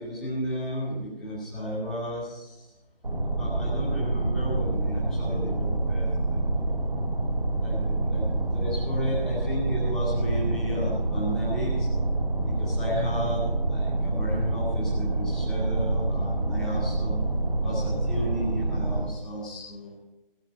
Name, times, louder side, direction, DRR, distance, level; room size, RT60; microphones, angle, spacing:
voice 1, 0.0-2.7 3.4-6.4 7.6-8.3 8.5-11.9 12.4-17.2 17.6-19.9, equal, ahead, -8 dB, 1.8 m, -33 dB
sound 1, 3.0-19.0, right 2 dB, 60° right, 3.1 m, -27 dB
17.0 x 9.0 x 5.4 m, 1.0 s
figure-of-eight pair, 155°, 29 cm